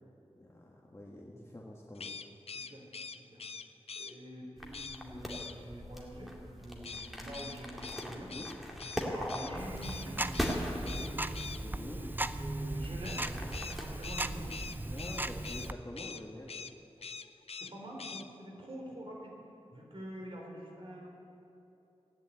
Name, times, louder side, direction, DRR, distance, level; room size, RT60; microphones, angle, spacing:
voice 1, 0.4-2.2 8.3-8.5 11.6-12.0 14.8-16.6, left 1 dB, 25° left, -2 dB, 1.6 m, -46 dB
sound 1, 1.9-4.1 4.7-5.0 5.3-5.5 6.8-9.5 9.8-10.1 10.3-10.6 10.9-11.6 13.0-15.7 16.0-16.2 16.5-16.7 17.0-17.7 18.0-18.2, left 5 dB, 70° left, 0.6 m, -43 dB
voice 2, 2.5-2.8 3.2-3.4 4.0-8.4 8.9-11.3 11.9-12.1 12.3-14.5 17.6-19.4 19.7-21.1, equal, 55° right, -1 dB, 3.4 m, -46 dB
sound 2, 4.6-13.9, equal, ahead, 2.3 m, -41 dB
Tick-tock, 9.6-15.7, right 2 dB, 20° right, 0.5 m, -38 dB
16.0 x 10.5 x 8.6 m, 2.9 s
wide cardioid pair, 90°, 11 cm